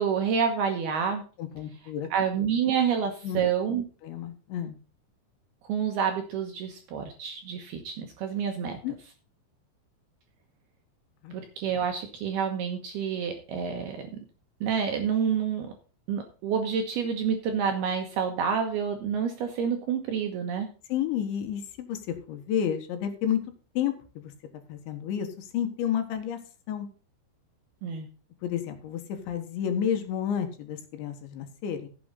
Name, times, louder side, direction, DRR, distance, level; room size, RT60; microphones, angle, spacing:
voice 1, 0.0-1.2 2.1-3.8 5.6-8.8 11.3-14.1 14.6-15.7 16.1-20.7 27.8-28.1, right 7 dB, 70° right, 5 dB, 2.5 m, -28 dB
voice 2, 1.4-2.1 3.2-3.4 4.0-4.8 8.8-9.0 11.2-11.3 20.9-23.4 23.8-24.3 24.7-26.4 26.7-26.9 28.4-31.9, left 9 dB, 70° left, 6 dB, 3.5 m, -31 dB
15.0 x 7.8 x 4.0 m, 0.36 s
omnidirectional pair, 5.8 m